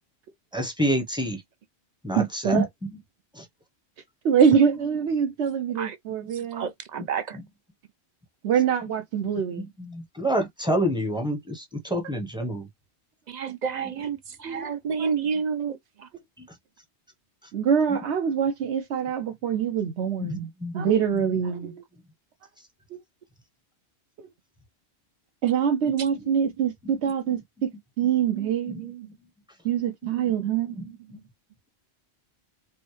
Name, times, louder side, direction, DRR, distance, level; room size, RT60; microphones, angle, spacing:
voice 1, 0.5-1.4 2.0-2.6 3.3-3.5 8.8-8.9 9.6-12.7 16.4-16.5 17.9-18.1 20.2-20.9 25.8-25.9 26.3-26.4 28.7-28.9 30.7-31.2, equal, 5° right, 0.7 m, -28 dB
voice 2, 2.2-2.7 4.2-6.7 8.4-9.7 14.4-14.7 15.0-15.1 17.5-21.7 22.9-23.0 25.4-27.7 28.0-28.7 29.6-30.7, right 7 dB, 80° right, 1.0 m, -24 dB
voice 3, 6.3-7.4 13.3-16.1 21.6-21.8 26.0-26.1 28.3-29.1 30.0-30.2 30.8-31.0, right 6 dB, 55° right, 0.5 m, -31 dB
4.7 x 2.1 x 3.1 m
omnidirectional pair, 1.1 m